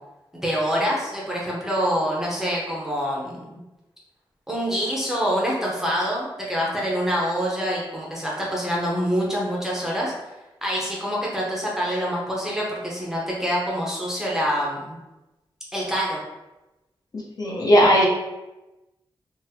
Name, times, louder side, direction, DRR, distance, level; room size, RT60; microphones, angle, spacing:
voice 1, 0.4-3.4 4.5-10.1 10.6-15.0 15.7-16.2, equal, 5° right, -4 dB, 0.6 m, -26 dB
voice 2, 17.4-18.1, equal, 45° left, -4 dB, 0.7 m, -16 dB
3.7 x 2.0 x 2.7 m, 1.0 s
wide cardioid pair, 135°, 9 cm